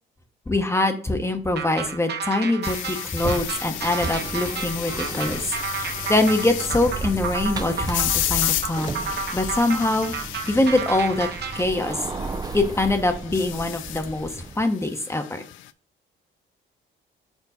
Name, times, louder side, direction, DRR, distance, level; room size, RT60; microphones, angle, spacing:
voice 1, 0.5-5.4 5.7-8.9 9.3-10.1 10.5-11.3 11.5-12.1 12.5-14.3 14.6-15.4, left 2 dB, 15° left, 6 dB, 0.8 m, -23 dB
sound 1, 1.5-11.6, right 6 dB, 55° right, 0.9 m, -32 dB
sound 2, 2.6-15.7, left 14 dB, 80° left, 0.4 m, -33 dB
sound 3, 3.2-14.6, right 4 dB, 20° right, 0.4 m, -34 dB
4.6 x 3.9 x 5.4 m, 0.43 s
cardioid pair, 90°, 20 cm